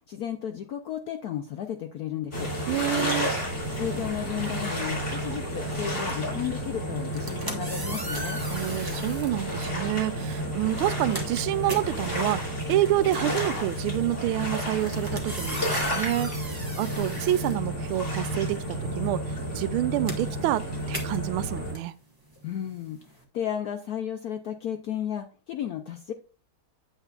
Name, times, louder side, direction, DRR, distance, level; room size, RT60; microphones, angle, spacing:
voice 1, 0.0-2.5 3.8-8.4 22.4-23.0 23.3-26.1, left 10 dB, 75° left, 0.8 m, -33 dB
sound 1, 2.3-21.7, equal, 35° left, 3.4 m, -31 dB
voice 2, 2.7-3.3 8.5-19.2 19.5-21.9, right 14 dB, 85° right, 1.4 m, -28 dB
sound 2, 7.0-9.4 10.3-10.5 10.8-18.3 18.6-23.2, right 1 dB, 15° right, 1.1 m, -38 dB
9.0 x 8.1 x 2.4 m
omnidirectional pair, 2.3 m